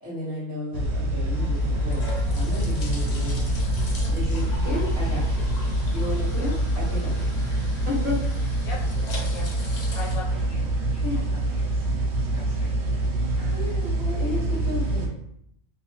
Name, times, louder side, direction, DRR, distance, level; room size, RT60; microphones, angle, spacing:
voice 1, 0.0-3.4 4.1-5.5 5.9-7.2 7.8-8.2 11.0-11.2 13.5-15.1, left 2 dB, 25° left, -11 dB, 1.2 m, -32 dB
sound 1, 0.7-15.1, right 1 dB, 70° right, 0.8 m, -25 dB
sound 2, 1.2-11.2, left 1 dB, 55° left, 0.5 m, -39 dB
voice 2, 3.2-3.6 4.6-4.8 6.3-6.5 8.6-8.9 9.3-9.5 9.9-13.9 14.2-14.4, left 3 dB, 75° left, -6 dB, 1.2 m, -43 dB
2.7 x 2.2 x 2.8 m, 0.73 s
omnidirectional pair, 1.3 m